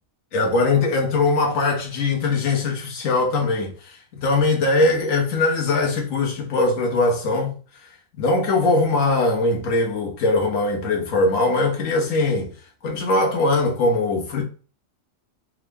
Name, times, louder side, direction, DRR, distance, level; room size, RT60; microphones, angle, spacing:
voice 1, 0.3-7.5 8.2-12.5 12.8-14.4, left 2 dB, 85° left, 1.3 m, -21 dB
3.6 x 2.0 x 3.3 m
omnidirectional pair, 1.3 m